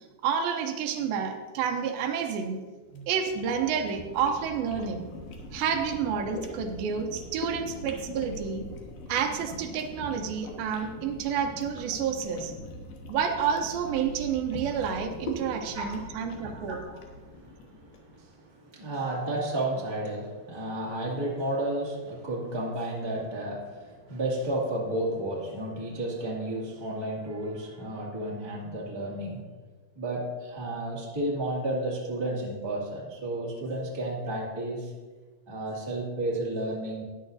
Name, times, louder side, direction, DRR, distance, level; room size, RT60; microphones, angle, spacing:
voice 1, 0.2-2.6 2.9-5.1 5.5-8.6 9.1-12.5 13.1-16.8, right 7 dB, 80° right, 5 dB, 2.5 m, -29 dB
sound 1, 2.9-18.1, left 1 dB, 80° left, 3.1 m, -42 dB
voice 2, 15.7-16.2 16.5-29.4 29.9-34.9 35.5-37.0, right 1 dB, 10° right, -5 dB, 1.2 m, -32 dB
13.0 x 10.0 x 2.6 m, 1.4 s
omnidirectional pair, 4.3 m